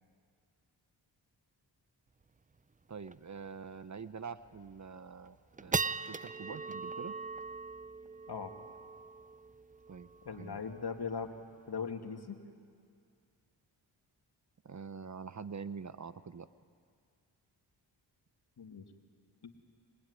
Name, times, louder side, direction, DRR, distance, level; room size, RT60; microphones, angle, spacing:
sound 1, 2.2-2.3 2.6-2.7 3.1-3.3 3.8-3.9 4.4-4.8 5.2-11.8, right 4 dB, 20° right, 0.6 m, -40 dB
voice 1, 2.9-5.8 6.1-7.1 9.9-10.1 10.4-10.6 14.6-16.5, right 5 dB, 40° right, 13 dB, 0.9 m, -45 dB
voice 2, 10.3-11.4 11.7-12.4 18.6-18.9 19.4-19.5, left 5 dB, 60° left, 4 dB, 2.5 m, -39 dB
25.0 x 22.0 x 9.9 m, 2.2 s
cardioid pair, 60°, 44 cm